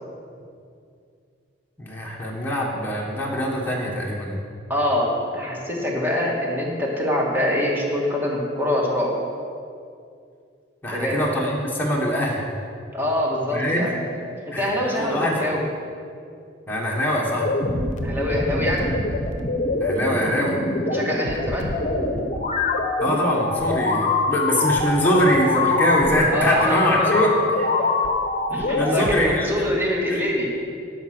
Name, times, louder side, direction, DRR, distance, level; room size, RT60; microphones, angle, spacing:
voice 1, 1.8-4.4 10.8-12.4 13.5-13.9 14.5-15.4 16.7-17.5 19.8-20.6 23.0-27.7 28.5-29.8 30.1-30.2, equal, 10° left, -4 dB, 1.3 m, -23 dB
voice 2, 4.7-9.1 10.9-11.2 12.9-14.0 14.6-15.6 18.0-18.9 20.9-21.7 26.3-27.1 28.5-30.5, left 1 dB, 10° right, -3 dB, 1.7 m, -24 dB
sound 1, 17.4-29.1, left 2 dB, 40° left, 0.9 m, -24 dB
12.5 x 4.9 x 6.0 m, 2.4 s
head